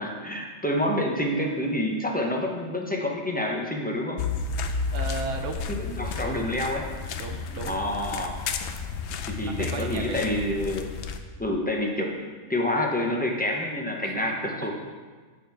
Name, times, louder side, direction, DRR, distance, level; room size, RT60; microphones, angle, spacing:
voice 1, 0.0-4.2 5.8-6.8 7.7-8.4 9.3-10.9 11.4-14.7, left 1 dB, 10° left, 0 dB, 0.6 m, -28 dB
sound 1, 4.2-11.2, left 5 dB, 70° left, 0.8 m, -32 dB
voice 2, 4.9-5.6 6.2-6.4 7.2-7.8 9.4-10.4 14.0-14.3, right 4 dB, 75° right, 4 dB, 1.1 m, -35 dB
7.2 x 6.9 x 3.5 m, 1.4 s
omnidirectional pair, 1.3 m